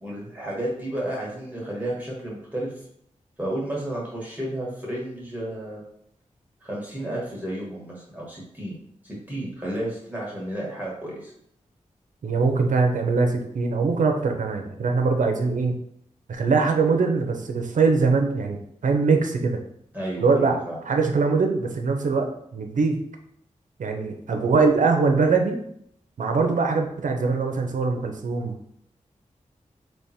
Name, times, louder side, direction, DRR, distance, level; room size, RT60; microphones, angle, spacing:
voice 1, 0.0-2.7 3.4-5.8 6.6-8.7 9.0-11.3 19.9-20.8, right 1 dB, 10° right, -5 dB, 1.4 m, -32 dB
voice 2, 12.2-15.7 16.3-19.6 20.2-20.6 20.9-23.0 23.8-25.6 26.2-28.5, right 4 dB, 85° right, 4 dB, 0.6 m, -22 dB
3.4 x 3.0 x 4.2 m, 0.69 s
cardioid pair, 65°, 13 cm